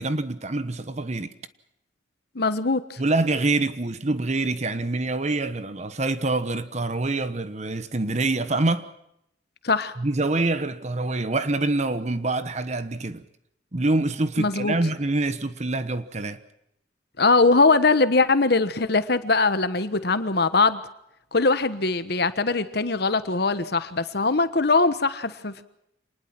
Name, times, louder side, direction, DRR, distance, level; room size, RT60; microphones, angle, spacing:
voice 1, 0.0-1.3 3.0-8.9 10.0-13.2 13.7-16.4, right 2 dB, 40° right, 1.1 m, -25 dB
voice 2, 2.3-3.0 9.6-9.9 14.4-14.7 17.2-20.8 21.3-25.6, left 3 dB, 60° left, 1.3 m, -21 dB
26.5 x 20.0 x 6.0 m
head